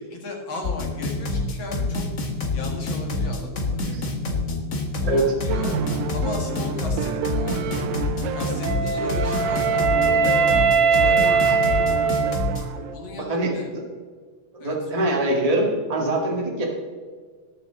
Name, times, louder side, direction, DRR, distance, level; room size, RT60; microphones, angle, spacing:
voice 1, 0.1-2.0 2.5-3.8 4.2-4.5 4.9-5.7 6.1-7.7 8.3-11.8 12.8-13.7 14.6-15.1, left 3 dB, 45° left, 1 dB, 2.4 m, -36 dB
sound 1, 0.6-12.6, left 2 dB, 80° left, 0.6 m, -27 dB
sound 2, 5.5-13.0, right 6 dB, 80° right, 1.7 m, -31 dB
Wind instrument woodwind instrument, 8.6-12.8, right 5 dB, 60° right, 1.2 m, -21 dB
voice 2, 14.5-16.6, right 1 dB, 15° right, -1 dB, 1.3 m, -23 dB
19.5 x 6.6 x 3.9 m, 1.6 s
omnidirectional pair, 3.4 m